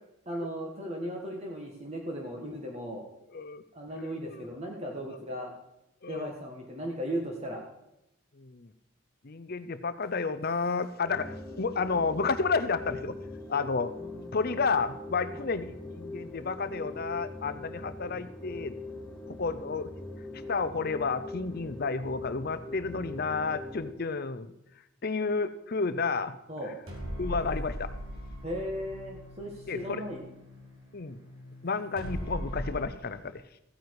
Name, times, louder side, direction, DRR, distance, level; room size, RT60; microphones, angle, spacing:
voice 1, 0.2-3.1 3.7-5.5 6.1-7.6 14.0-14.3 15.3-15.4 26.5-26.7 28.4-30.2, equal, 30° right, 0 dB, 1.6 m, -36 dB
voice 2, 3.3-3.6 4.0-4.4 6.0-6.3 8.4-8.7 9.2-13.2 13.5-13.9 14.3-18.7 19.3-19.9 20.5-24.5 25.0-26.4 27.2-27.9 29.7-30.0 30.9-31.2 31.6-33.4, left 4 dB, 45° left, 13 dB, 0.7 m, -31 dB
sound 1, 11.0-23.9, left 2 dB, 5° left, 2.2 m, -42 dB
sound 2, 26.9-32.8, equal, 75° right, 3.7 m, -39 dB
15.0 x 9.4 x 4.8 m, 0.84 s
head